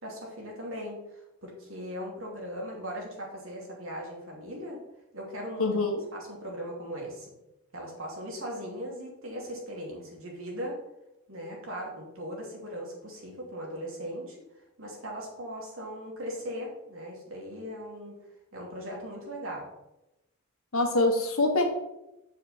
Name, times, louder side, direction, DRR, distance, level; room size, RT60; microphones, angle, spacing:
voice 1, 0.0-4.8 5.1-5.8 6.1-7.3 7.7-10.8 11.3-18.2 18.5-19.7, equal, 70° right, -2 dB, 2.7 m, -39 dB
voice 2, 5.6-6.1 20.7-21.6, left 2 dB, 75° left, 4 dB, 1.4 m, -24 dB
6.9 x 5.0 x 6.7 m, 0.90 s
head